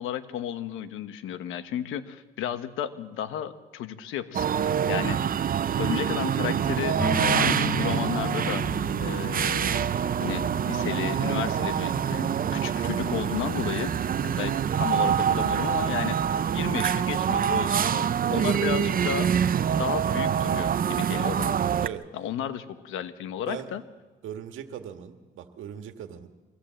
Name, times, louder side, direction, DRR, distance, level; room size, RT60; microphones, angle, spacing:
voice 1, 0.0-5.2 5.8-8.7 9.0-9.9 10.2-19.3 19.8-21.6 22.1-23.8, left 10 dB, 90° left, 11 dB, 1.2 m, -33 dB
sound 1, 4.3-21.9, right 8 dB, 45° right, 0.7 m, -25 dB
voice 2, 5.6-6.0 17.9-18.7 21.8-22.1 23.5-23.7 24.2-26.3, right 9 dB, 80° right, 7 dB, 1.8 m, -39 dB
sound 2, 7.0-14.6, left 2 dB, 10° left, 2.8 m, -36 dB
24.0 x 17.0 x 7.7 m, 1.2 s
cardioid pair, 90°, 20 cm